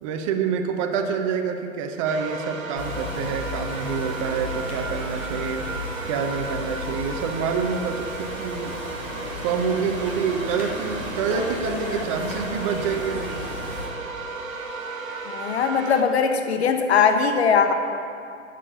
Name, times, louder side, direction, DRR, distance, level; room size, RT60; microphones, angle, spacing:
voice 1, 0.0-5.6 6.1-8.7 9.4-13.4, right 6 dB, 25° right, 4 dB, 0.8 m, -27 dB
sound 1, 2.0-16.0, right 4 dB, 85° right, 1.4 m, -34 dB
sound 2, 2.8-13.9, left 2 dB, 10° left, 0.3 m, -34 dB
voice 2, 15.3-17.7, left 6 dB, 55° left, 6 dB, 1.1 m, -20 dB
9.8 x 6.8 x 6.6 m, 2.6 s
figure-of-eight pair, 125°, 39 cm